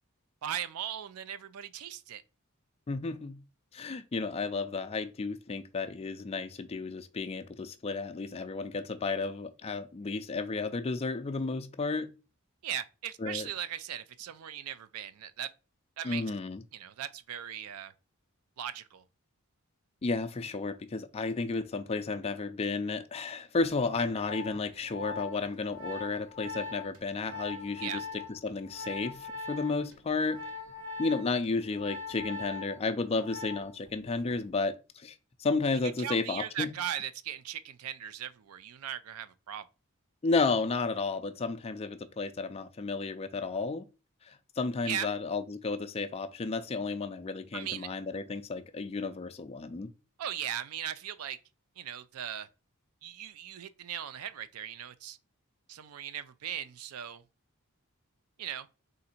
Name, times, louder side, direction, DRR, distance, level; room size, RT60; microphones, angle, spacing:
voice 1, 0.4-2.2 12.6-15.5 16.0-16.2 16.7-17.9 18.6-19.0 27.8-28.0 36.0-39.6 44.8-45.1 47.5-47.9 50.2-51.4 51.8-52.5 53.0-55.2 55.7-57.2 58.4-58.7, right 10 dB, 90° right, 0.4 m, -38 dB
voice 2, 2.9-3.4 3.7-12.1 13.2-13.5 16.0-16.6 20.0-30.4 31.0-36.7 40.2-43.8 44.3-49.9, left 3 dB, 30° left, 0.3 m, -32 dB
Organ, 23.9-33.9 34.2-34.5, left 3 dB, 70° right, 1.2 m, -42 dB
3.8 x 2.6 x 4.2 m
head